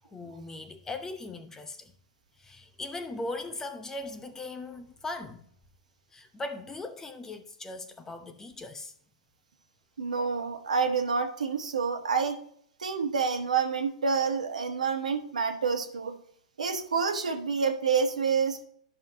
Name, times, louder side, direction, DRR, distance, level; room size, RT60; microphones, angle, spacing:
voice 1, 0.1-1.9 2.4-5.4 6.1-8.9, left 2 dB, 15° left, 0.8 m, -39 dB
voice 2, 10.0-12.4 12.8-16.1 16.6-18.6, right 5 dB, 85° right, 1.2 m, -28 dB
11.0 x 5.8 x 2.9 m
hypercardioid pair, 120°, 4 cm